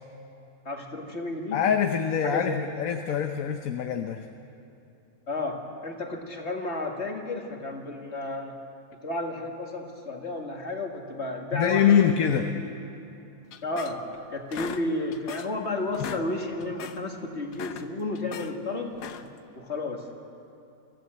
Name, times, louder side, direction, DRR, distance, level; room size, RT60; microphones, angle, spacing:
voice 1, 0.7-1.6 2.3-2.7 5.3-8.5 9.0-12.0 12.4-12.7 13.6-14.0 14.3-19.0 19.6-20.2, left 2 dB, 45° left, 2 dB, 2.4 m, -32 dB
voice 2, 1.5-4.3 11.5-12.5, left 8 dB, 65° left, 6 dB, 1.2 m, -24 dB
sound 1, 13.5-14.2 14.5-15.6 15.9-16.3 16.6-17.0 17.4-18.5 18.9-19.4, left 8 dB, 90° left, 1.4 m, -39 dB
27.0 x 15.0 x 7.9 m, 2.8 s
omnidirectional pair, 1.7 m